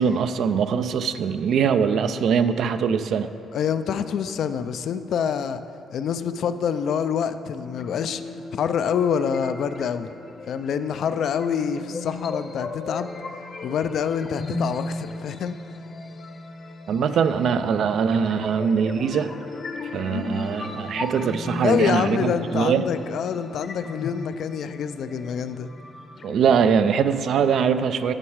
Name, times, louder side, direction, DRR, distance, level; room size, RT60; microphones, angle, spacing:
voice 1, 0.0-3.3 16.9-19.3 19.9-22.9 26.2-28.1, right 6 dB, 70° right, 11 dB, 0.4 m, -22 dB
voice 2, 3.5-5.6 5.9-8.2 8.5-10.1 10.5-13.1 13.6-15.6 21.6-25.7, left 7 dB, 70° left, 11 dB, 0.4 m, -26 dB
sound 1, 7.6-27.5, left 3 dB, 45° left, 0.7 m, -36 dB
8.8 x 6.3 x 4.7 m, 2.7 s
cardioid pair, 90°, 0 cm